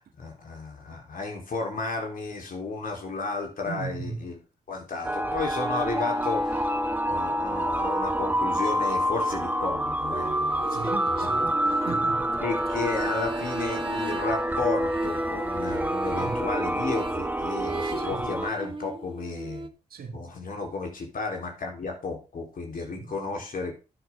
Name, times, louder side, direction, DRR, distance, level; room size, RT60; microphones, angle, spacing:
voice 1, 0.2-4.4 4.7-10.8 11.2-11.3 12.4-19.7 20.1-23.7, left 3 dB, 60° left, 3.8 m, -33 dB
voice 2, 3.6-4.2 10.7-12.5 16.1-16.4 18.0-18.3 19.9-20.3 22.8-23.1, right 5 dB, 70° right, 2.0 m, -38 dB
sound 1, 5.0-18.5, equal, 10° right, 1.2 m, -28 dB
sound 2, 5.5-9.0 10.1-19.7, right 3 dB, 35° right, 1.3 m, -37 dB
11.5 x 7.9 x 3.7 m
supercardioid pair, 45°, 16 cm